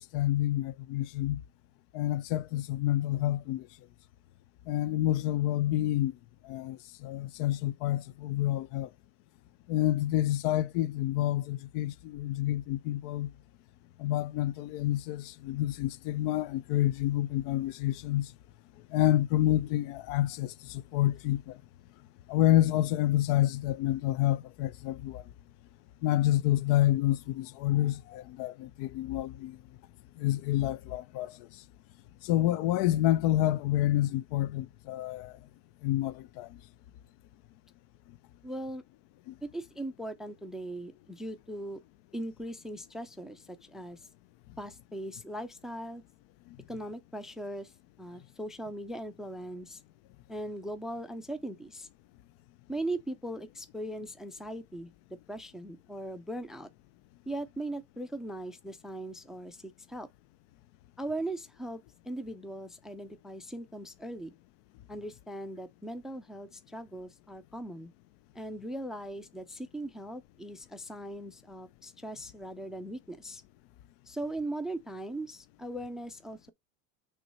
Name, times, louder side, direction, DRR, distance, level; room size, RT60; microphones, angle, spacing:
voice 1, 0.0-1.4 1.9-3.7 4.7-6.2 6.4-8.9 9.7-13.3 14.0-18.3 18.9-21.6 22.3-25.2 26.0-29.6 30.2-31.6 32.2-35.4 35.8-36.6 39.3-39.4 46.5-46.6, left 14 dB, 60° left, 0.5 m, -28 dB
voice 2, 38.4-38.8 39.4-41.8 42.1-44.0 44.6-46.0 46.7-47.7 48.0-49.8 50.3-51.9 52.7-54.9 55.3-56.7 57.3-60.1 61.0-64.4 64.9-67.9 68.3-73.4 74.1-76.5, right 1 dB, ahead, 0.4 m, -39 dB
6.0 x 3.1 x 5.5 m
supercardioid pair, 130°, 37 cm